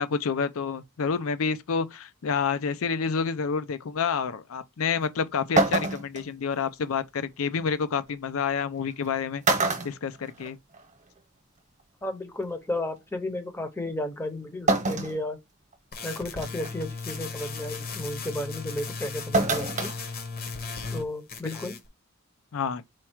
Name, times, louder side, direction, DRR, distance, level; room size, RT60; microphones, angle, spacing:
voice 1, 0.0-9.4 9.8-10.6 22.5-22.8, left 6 dB, 70° left, 0.5 m, -28 dB
sound 1, 5.0-5.1 5.6-6.2 7.8-7.9 8.9-9.1 9.4-10.8 11.2-11.3 12.5-12.6 14.7-15.2 15.7-15.8 16.4-16.7 19.3-19.9 20.3-20.4, right 3 dB, 35° right, 1.0 m, -25 dB
voice 2, 12.0-15.4 16.0-19.9 20.9-21.8, left 1 dB, 10° left, 0.7 m, -33 dB
sound 2, 15.9-21.0 21.3-21.9, left 4 dB, 45° left, 0.9 m, -36 dB
4.5 x 2.3 x 4.3 m
head